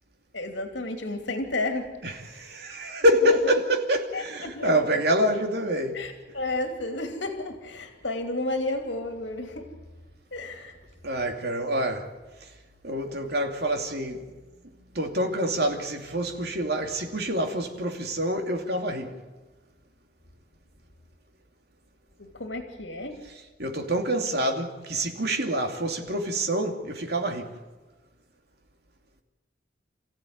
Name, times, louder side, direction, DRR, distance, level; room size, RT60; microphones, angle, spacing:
voice 1, 0.3-1.9 2.3-2.4 3.2-3.6 4.1-4.9 5.9-9.7 10.3-10.8 22.2-23.2, left 2 dB, 75° left, 2.7 m, -32 dB
voice 2, 2.0-6.0 11.0-12.1 12.4-12.5 12.8-14.2 14.9-19.1 23.6-27.5, equal, 60° right, 2.7 m, -26 dB
28.0 x 15.5 x 9.5 m
head